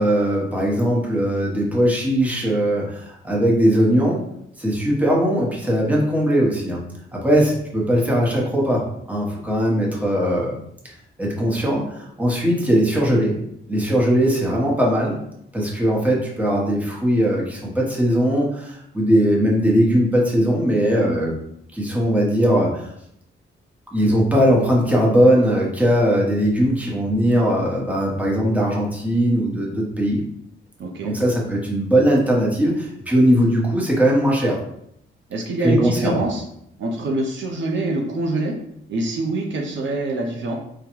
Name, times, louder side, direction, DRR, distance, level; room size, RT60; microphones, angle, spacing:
voice 1, 0.0-4.2 4.6-6.8 7.1-8.8 9.1-10.6 10.8-10.9 11.2-13.3 13.7-15.2 15.5-21.3 21.7-22.9 23.9-30.2 31.0-34.6 35.6-36.2, equal, 5° right, -3 dB, 1.0 m, -19 dB
voice 2, 30.8-31.2 35.3-36.4 36.8-38.5 38.9-40.6, right 2 dB, 65° right, 0 dB, 0.6 m, -25 dB
3.8 x 2.2 x 3.0 m, 0.75 s
cardioid pair, 85°, 21 cm